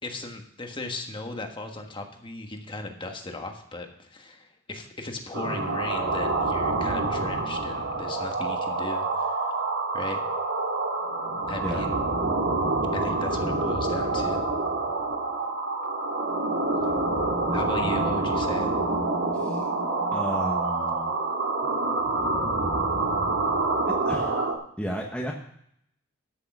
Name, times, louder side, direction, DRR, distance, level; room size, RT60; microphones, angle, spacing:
voice 1, 0.0-9.6 9.9-10.2 11.5-12.0 12.9-14.4 17.5-18.7, left 2 dB, 25° left, 4 dB, 1.4 m, -37 dB
sound 1, 5.3-24.5, right 3 dB, 65° right, 2.1 m, -27 dB
voice 2, 19.3-19.7 20.1-21.1 23.9-24.5 24.8-25.3, equal, 5° left, -1 dB, 1.1 m, -33 dB
13.5 x 6.7 x 6.1 m, 0.72 s
head